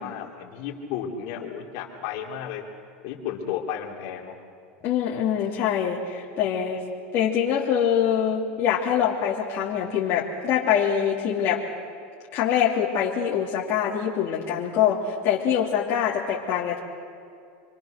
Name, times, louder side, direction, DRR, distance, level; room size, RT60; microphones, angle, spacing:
voice 1, 0.0-2.6 3.0-4.4, left 8 dB, 60° left, 0 dB, 3.5 m, -33 dB
voice 2, 4.8-6.8 7.1-11.6 12.3-16.8, left 8 dB, 45° left, -5 dB, 2.8 m, -24 dB
28.0 x 23.0 x 6.6 m, 2.3 s
supercardioid pair, 130°, 6 cm